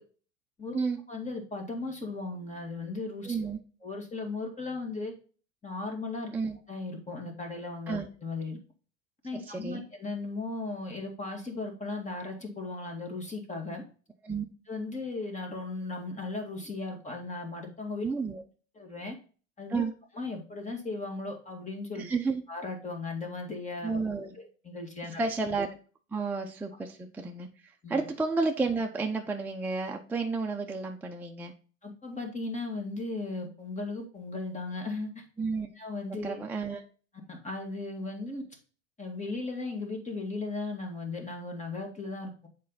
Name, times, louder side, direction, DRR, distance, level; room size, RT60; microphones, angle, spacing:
voice 1, 1.1-3.4 3.8-5.1 5.6-6.3 6.7-8.6 9.2-13.8 14.7-18.1 18.8-19.2 19.6-19.8 20.1-22.1 22.5-24.0 24.4-25.2 27.8-28.0 31.8-35.2 35.8-36.4 37.3-38.4 39.0-42.5, left 3 dB, 20° left, 3 dB, 2.1 m, -36 dB
voice 2, 3.3-3.6 6.3-6.6 7.9-8.1 9.5-9.8 14.2-14.5 18.0-18.4 19.7-19.9 22.0-22.4 23.8-24.4 25.2-25.7 26.1-31.5 35.4-35.7 36.2-36.8, right 4 dB, 5° right, 2 dB, 0.6 m, -31 dB
7.4 x 4.4 x 4.0 m, 0.39 s
hypercardioid pair, 95°, 40 cm